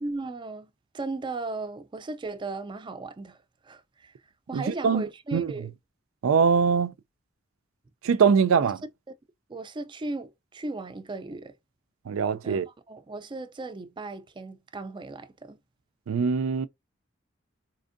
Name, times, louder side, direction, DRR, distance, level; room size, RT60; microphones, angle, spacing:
voice 1, 0.0-4.1 4.5-5.7 8.6-8.7 9.5-11.6 12.4-15.6, right 3 dB, 25° right, 0.4 m, -36 dB
voice 2, 4.5-5.0 5.3-5.5 6.2-6.9 8.0-8.8 12.1-12.7 16.1-16.7, right 6 dB, 85° right, 0.4 m, -22 dB
4.3 x 2.5 x 2.5 m
head